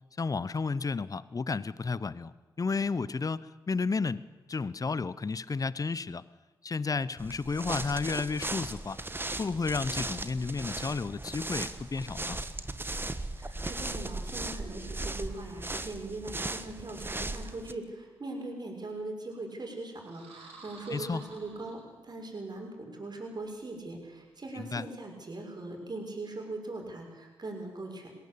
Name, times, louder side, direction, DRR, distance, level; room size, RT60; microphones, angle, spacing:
voice 1, 0.2-3.4 3.7-4.2 4.5-6.2 6.6-9.0 9.4-12.4 20.9-21.2 24.5-24.8, left 4 dB, 35° left, 18 dB, 0.7 m, -32 dB
sound 1, 7.2-17.7, right 2 dB, 20° right, 1.3 m, -37 dB
voice 2, 13.4-28.1, right 2 dB, 45° right, 1 dB, 6.1 m, -40 dB
sound 2, 20.0-22.3, right 3 dB, 75° right, 5.4 m, -51 dB
20.5 x 16.5 x 8.6 m, 1.3 s
hypercardioid pair, 40°, 10 cm